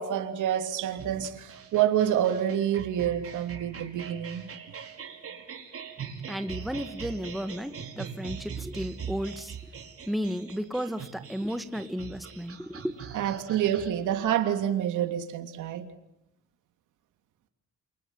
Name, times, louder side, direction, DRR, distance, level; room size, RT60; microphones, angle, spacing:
voice 1, 0.0-4.5 13.1-15.9, right 10 dB, 80° right, 3.1 m, -27 dB
sound 1, 1.0-13.9, right 7 dB, 50° right, 5.6 m, -42 dB
voice 2, 6.3-9.6 10.0-13.0, equal, ahead, 2.1 m, -33 dB
28.5 x 26.0 x 7.5 m
cardioid pair, 90°, 30 cm